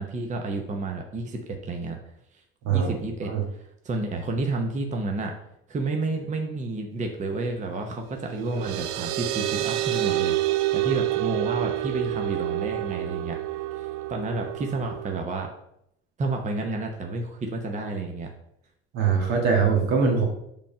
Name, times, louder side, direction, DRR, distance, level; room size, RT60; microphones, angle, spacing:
voice 1, 0.0-2.0 2.7-5.3 5.7-15.5 16.2-18.3, right 2 dB, 25° right, 3 dB, 0.8 m, -31 dB
sound 1, 8.1-15.2, right 16 dB, 85° right, 0.5 m, -28 dB
voice 2, 18.9-20.2, right 5 dB, 65° right, 2 dB, 1.6 m, -22 dB
5.2 x 3.6 x 5.6 m, 0.76 s
supercardioid pair, 95°, 29 cm